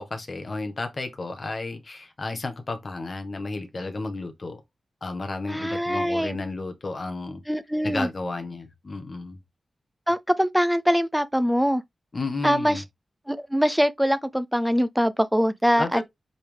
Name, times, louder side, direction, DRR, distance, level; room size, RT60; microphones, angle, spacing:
voice 1, 0.0-4.6 5.0-7.4 7.8-9.4 12.1-12.8 15.8-16.0, left 3 dB, 35° left, 1.5 m, -32 dB
voice 2, 5.5-6.4 7.5-8.1 10.1-11.8 12.4-12.8 13.3-16.0, equal, 5° right, 0.5 m, -23 dB
7.9 x 3.9 x 3.5 m
wide cardioid pair, 165°, 0 cm